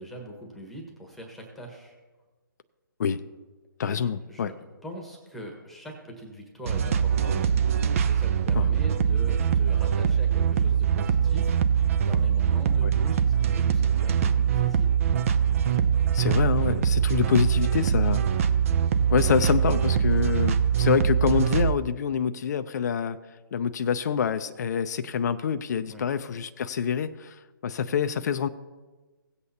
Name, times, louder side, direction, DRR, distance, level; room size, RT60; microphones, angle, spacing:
voice 1, 0.0-2.0 3.8-4.5 4.8-14.9 18.1-18.3 25.9-26.0, equal, ahead, 1 dB, 1.4 m, -42 dB
voice 2, 3.8-4.5 8.5-8.7 12.8-12.9 16.1-18.2 19.1-23.2 23.5-28.5, left 7 dB, 50° left, 10 dB, 0.5 m, -26 dB
sound 1, 6.7-21.7, right 8 dB, 40° right, 0.6 m, -23 dB
17.0 x 8.2 x 2.8 m, 1.3 s
figure-of-eight pair, 145°, 12 cm